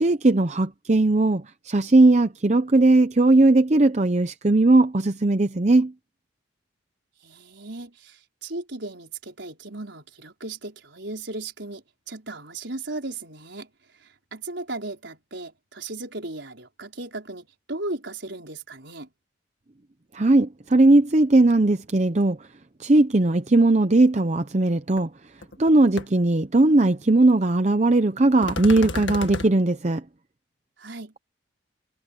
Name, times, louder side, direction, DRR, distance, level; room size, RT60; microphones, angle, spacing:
voice 1, 0.0-5.9 20.1-22.4 22.8-25.1 25.6-30.0, right 2 dB, 35° right, 0.7 m, -18 dB
voice 2, 7.2-13.7 14.0-19.1 30.8-31.1, right 2 dB, 65° right, 5.1 m, -36 dB
sound 1, 25.0-25.1 25.4-25.7 26.0-26.1 28.4-29.5, left 3 dB, 70° left, 1.7 m, -31 dB
head